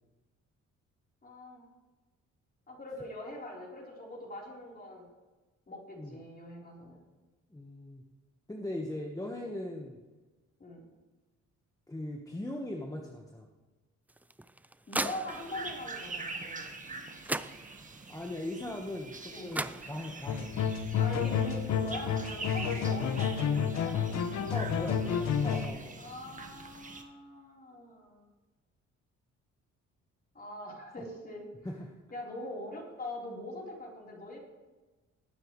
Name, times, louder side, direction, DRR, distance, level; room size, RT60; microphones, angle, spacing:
voice 1, 1.2-1.6 2.7-5.1 5.7-7.0 10.6-10.8 14.9-16.7 19.3-19.6 20.9-24.0 24.4-24.9 26.0-28.2 30.3-31.5 32.1-34.4, left 1 dB, 30° left, -2 dB, 4.0 m, -43 dB
voice 2, 7.5-8.0 8.5-10.0 11.9-13.5 18.1-20.5 24.5-26.0 31.6-31.9, left 1 dB, 10° left, 0 dB, 1.3 m, -39 dB
sound 1, 14.1-15.7 16.9-17.0 17.2-18.1 19.2-19.3 19.5-20.4, right 1 dB, 5° right, 0.4 m, -37 dB
sound 2, 15.3-27.0, right 3 dB, 25° right, 1.4 m, -45 dB
sound 3, 20.3-25.7, left 7 dB, 60° left, 1.0 m, -30 dB
18.5 x 9.0 x 3.2 m, 1.2 s
cardioid pair, 90°, 30 cm